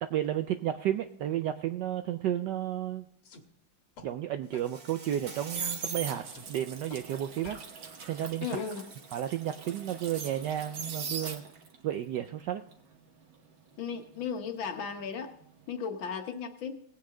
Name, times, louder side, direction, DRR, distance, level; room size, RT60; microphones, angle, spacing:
voice 1, 0.0-3.0 4.0-7.6 8.0-8.6 9.1-11.4 11.8-12.6, right 11 dB, 75° right, 9 dB, 1.0 m, -32 dB
sound 1, 3.2-3.4 4.0-4.1 4.5-4.7 5.1-5.3 5.6-6.5 6.9-7.0 7.4-8.8, left 5 dB, 80° left, 2.3 m, -51 dB
Insect, 4.5-6.2 6.7-7.0 8.2-10.1, right 4 dB, 35° right, 1.0 m, -50 dB
sound 2, 5.1-11.8 12.1-15.0 15.3-15.6, right 5 dB, 60° right, 1.8 m, -41 dB
voice 2, 8.4-8.8 13.8-15.3 15.7-16.8, left 6 dB, 65° left, 5 dB, 1.9 m, -35 dB
18.5 x 8.8 x 3.8 m, 0.68 s
omnidirectional pair, 2.3 m